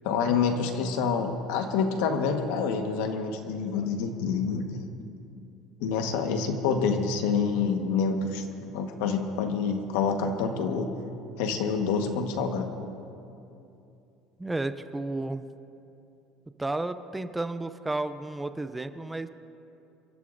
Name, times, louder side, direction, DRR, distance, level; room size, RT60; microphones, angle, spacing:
voice 1, 0.0-4.9 5.8-10.9 11.4-12.8, left 5 dB, 85° left, 5 dB, 1.3 m, -27 dB
voice 2, 14.4-15.4 16.6-19.3, right 2 dB, 10° right, 10 dB, 0.5 m, -32 dB
28.5 x 13.0 x 2.6 m, 2.7 s
cardioid pair, 145°, 0 cm